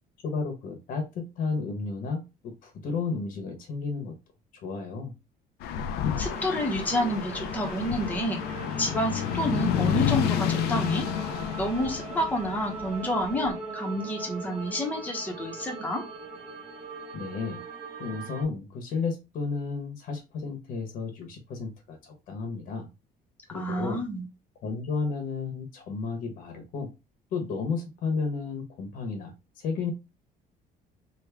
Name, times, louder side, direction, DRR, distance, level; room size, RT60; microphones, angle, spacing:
voice 1, 0.2-4.1 4.5-5.1 17.1-17.6 18.0-22.9 23.5-24.0 24.6-26.9 27.3-29.9, left 4 dB, 60° left, 0.9 m, -32 dB
sound 1, 5.6-13.0 13.2-13.5, left 9 dB, 85° left, 0.4 m, -30 dB
voice 2, 6.2-8.4 8.8-11.1 11.6-16.0 23.5-24.3, equal, 10° left, 0.7 m, -29 dB
sound 2, 6.2-18.4, right 3 dB, 40° right, 1.5 m, -40 dB
3.3 x 2.1 x 3.4 m
cardioid pair, 165°, 16 cm